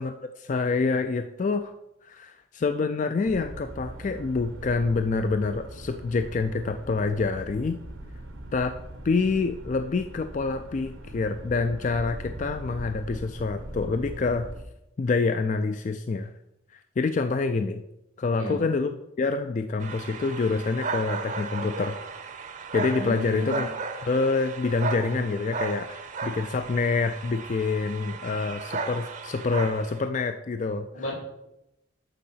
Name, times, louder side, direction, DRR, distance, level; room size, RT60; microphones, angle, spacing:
voice 1, 0.0-1.7 2.0-7.8 8.5-8.8 9.0-14.5 15.0-16.3 16.7-17.8 18.2-22.0 22.7-23.7 24.0-30.9, left 4 dB, 40° left, 8 dB, 0.3 m, -27 dB
sound 1, 3.2-14.6, right 1 dB, 80° right, 1.1 m, -41 dB
sound 2, 19.8-30.1, right 4 dB, 40° right, 0.7 m, -35 dB
voice 2, 22.9-23.6 30.9-31.1, left 2 dB, 85° left, -2 dB, 3.2 m, -34 dB
6.8 x 6.4 x 5.6 m, 0.89 s
head